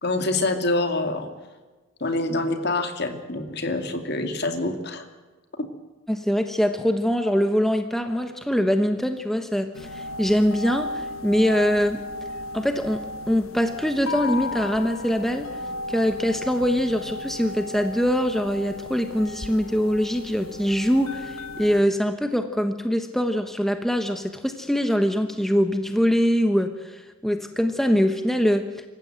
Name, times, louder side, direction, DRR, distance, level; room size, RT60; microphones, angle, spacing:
voice 1, 0.0-1.3 2.0-5.1 5.6-5.7, left 2 dB, 50° left, 6 dB, 2.4 m, -26 dB
voice 2, 6.1-12.0 12.5-15.5 15.9-28.7, equal, ahead, 6 dB, 1.1 m, -23 dB
sound 1, 9.7-21.8, left 2 dB, 80° left, 1.2 m, -35 dB
26.0 x 15.0 x 8.0 m, 1.3 s
head